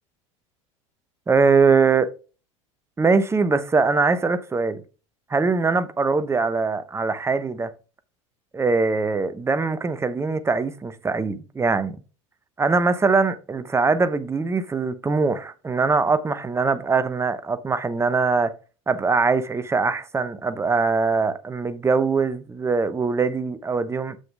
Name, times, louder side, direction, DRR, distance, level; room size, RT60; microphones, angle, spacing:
voice 1, 1.3-2.1 3.0-4.8 5.3-7.7 8.5-12.0 12.6-18.5 18.9-24.2, right 4 dB, 15° right, 0.9 m, -22 dB
7.1 x 6.4 x 3.5 m
hypercardioid pair, 80°, 17 cm